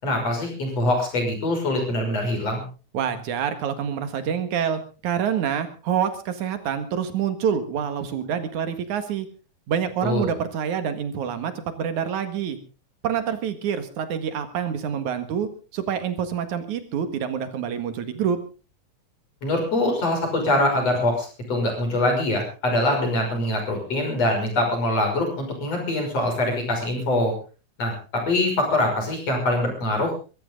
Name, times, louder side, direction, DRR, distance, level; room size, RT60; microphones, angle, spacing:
voice 1, 0.0-2.6 10.0-10.3 19.4-27.3 27.8-30.1, left 1 dB, 55° left, 2 dB, 7.1 m, -23 dB
voice 2, 2.9-9.3 9.7-12.6 13.0-18.4, right 8 dB, 85° right, 9 dB, 3.1 m, -27 dB
23.0 x 14.0 x 3.8 m, 0.34 s
omnidirectional pair, 3.4 m